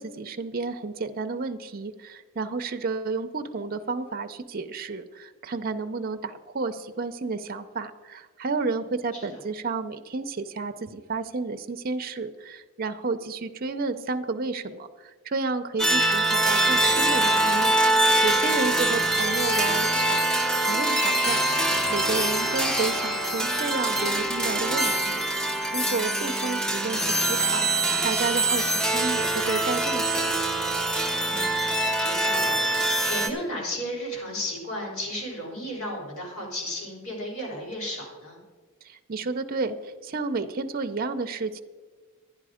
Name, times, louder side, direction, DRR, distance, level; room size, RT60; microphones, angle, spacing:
voice 1, 0.0-20.2 20.6-25.4 25.7-30.4 38.8-41.6, right 3 dB, 40° right, 8 dB, 0.5 m, -31 dB
sound 1, 15.8-33.3, right 1 dB, 5° left, 0.6 m, -24 dB
voice 2, 31.2-31.6 32.0-32.8 33.1-38.4, left 1 dB, 80° left, -2 dB, 4.2 m, -34 dB
11.0 x 10.5 x 5.0 m, 1.4 s
head